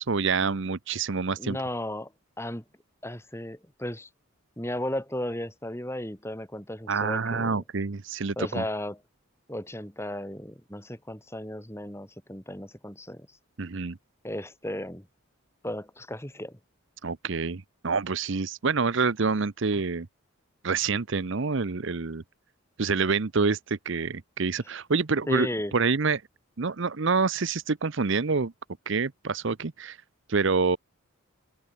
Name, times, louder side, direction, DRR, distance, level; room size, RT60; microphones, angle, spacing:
voice 1, 0.0-1.6 6.9-8.6 13.6-14.0 17.0-20.1 20.6-22.2 22.8-25.5 25.7-26.2 26.6-28.5 28.9-30.0 30.3-30.8, right 4 dB, 55° right, 0.7 m, -27 dB
voice 2, 1.4-2.1 2.4-2.6 3.0-4.1 4.6-7.6 8.4-9.0 9.5-13.3 14.2-15.1 15.6-16.6 25.3-25.7, left 1 dB, 10° left, 3.4 m, -35 dB
head